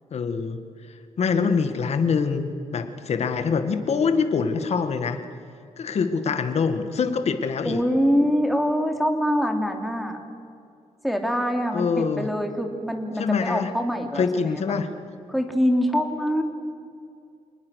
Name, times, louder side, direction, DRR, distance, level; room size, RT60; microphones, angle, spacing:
voice 1, 0.1-0.6 1.2-5.2 5.8-7.8 11.7-12.3 13.2-13.7 14.2-14.9, left 5 dB, 60° left, 8 dB, 1.9 m, -24 dB
voice 2, 7.6-10.2 11.0-14.6 15.3-16.4, equal, ahead, 4 dB, 3.0 m, -24 dB
28.5 x 20.0 x 6.6 m, 2.4 s
cardioid pair, 100°, 13 cm